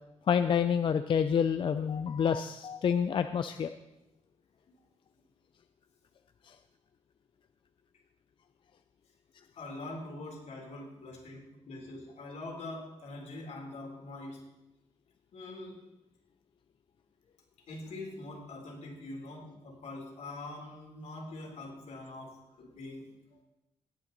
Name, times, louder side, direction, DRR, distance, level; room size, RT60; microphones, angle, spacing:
voice 1, 0.3-3.7 6.4-6.5, left 7 dB, 45° left, 10 dB, 0.4 m, -28 dB
voice 2, 9.6-14.4 15.3-15.8 17.7-23.4, left 2 dB, 75° left, -1 dB, 3.6 m, -44 dB
19.0 x 8.7 x 4.0 m, 0.96 s
wide cardioid pair, 160°, 12 cm